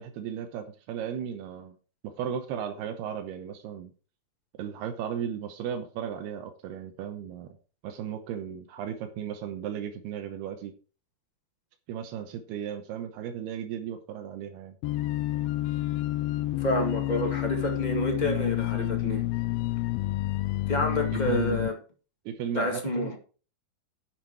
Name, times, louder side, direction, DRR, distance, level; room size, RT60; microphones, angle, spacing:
voice 1, 0.0-1.8 2.0-3.9 4.6-7.6 7.8-10.7 11.9-14.8 21.1-21.7 22.3-23.2, right 8 dB, 85° right, 3.0 m, -35 dB
sound 1, 14.8-21.7, left 17 dB, 80° left, 2.3 m, -29 dB
voice 2, 16.6-19.3 20.7-21.8 22.5-23.2, left 1 dB, 20° left, 1.1 m, -28 dB
10.5 x 7.5 x 4.7 m
omnidirectional pair, 4.5 m